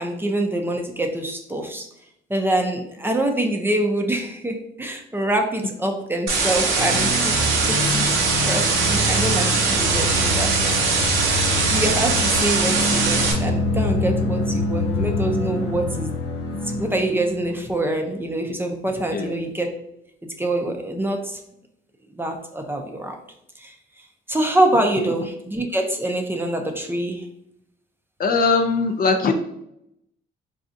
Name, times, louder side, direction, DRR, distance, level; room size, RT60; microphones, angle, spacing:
voice 1, 0.0-1.9 2.3-7.4 7.7-8.1 8.3-10.5 11.3-16.1 16.5-19.7 20.4-21.4 22.1-23.2 23.6-23.7 24.3-27.2, right 1 dB, 10° right, 3 dB, 0.5 m, -25 dB
sound 1, 6.3-13.3, right 4 dB, 85° right, 0.7 m, -21 dB
sound 2, 6.8-17.5, left 2 dB, 85° left, 0.7 m, -26 dB
voice 2, 28.2-29.3, left 4 dB, 45° left, 5 dB, 0.4 m, -20 dB
3.9 x 2.3 x 2.5 m, 0.77 s
cardioid pair, 90°, 20 cm